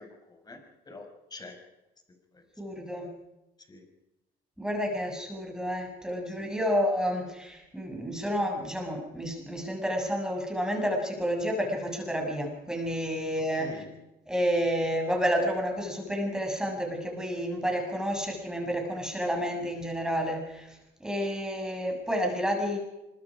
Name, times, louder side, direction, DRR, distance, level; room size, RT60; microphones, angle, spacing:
voice 1, 0.0-1.6 2.3-2.4 3.7-3.9 6.3-6.5 13.5-14.0, left 2 dB, 25° left, 5 dB, 5.8 m, -46 dB
voice 2, 2.6-3.1 4.6-13.8 14.3-22.8, equal, 5° right, 2 dB, 7.2 m, -30 dB
25.0 x 23.5 x 5.0 m, 0.96 s
cardioid pair, 110°, 17 cm